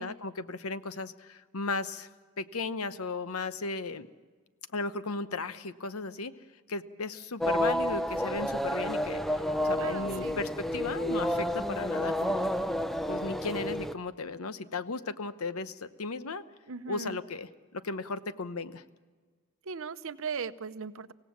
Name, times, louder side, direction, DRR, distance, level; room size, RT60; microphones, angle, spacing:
voice 1, 0.0-2.1 2.4-4.1 4.7-6.4 6.7-12.5 13.1-16.4 16.9-18.8, left 3 dB, 80° left, 13 dB, 0.9 m, -36 dB
sound 1, 7.4-13.9, equal, ahead, 0.6 m, -30 dB
voice 2, 9.8-10.4 16.7-17.2 19.7-21.1, right 5 dB, 65° right, 13 dB, 0.8 m, -38 dB
24.5 x 17.5 x 7.2 m, 1.5 s
head